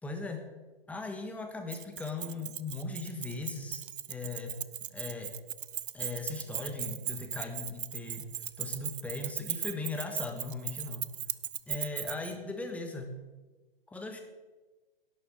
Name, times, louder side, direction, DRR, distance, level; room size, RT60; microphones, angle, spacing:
voice 1, 0.0-0.5 0.9-3.8 4.1-4.6 4.9-5.3 5.9-8.3 8.6-11.1 11.7-13.2 13.9-14.2, left 3 dB, 5° left, 5 dB, 1.2 m, -38 dB
Keys jangling, 1.7-12.3, right 10 dB, 60° right, 0.6 m, -38 dB
11.5 x 7.2 x 7.3 m, 1.2 s
figure-of-eight pair, 125°, 29 cm